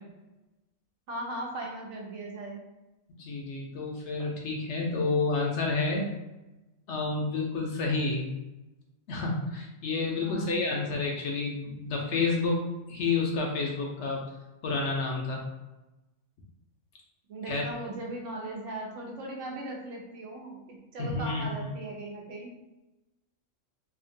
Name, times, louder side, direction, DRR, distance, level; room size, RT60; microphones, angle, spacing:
voice 1, 1.1-2.7 10.1-10.7 17.3-22.5, right 2 dB, 70° right, -1 dB, 1.0 m, -38 dB
voice 2, 3.2-6.1 6.9-8.3 9.1-14.2 14.6-15.4 17.5-17.6 21.0-21.7, left 3 dB, 65° left, -1 dB, 0.8 m, -29 dB
2.9 x 2.3 x 2.6 m, 1.0 s
omnidirectional pair, 1.4 m